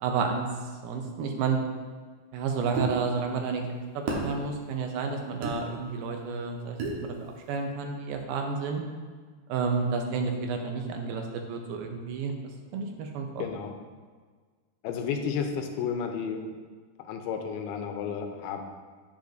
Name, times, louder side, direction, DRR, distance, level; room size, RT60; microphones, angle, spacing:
voice 1, 0.0-0.5 0.8-1.6 2.3-3.6 3.9-6.8 7.0-8.8 9.5-12.3 12.7-13.4, right 5 dB, 85° right, 3 dB, 2.6 m, -30 dB
sound 1, 2.8-2.9 4.1-4.3 5.4-5.6 6.8-7.0, right 3 dB, 65° right, 2.3 m, -30 dB
voice 2, 13.4-13.7 14.8-16.4 17.0-18.6, left 6 dB, 85° left, 5 dB, 2.6 m, -32 dB
8.6 x 7.9 x 2.6 m, 1.5 s
omnidirectional pair, 4.5 m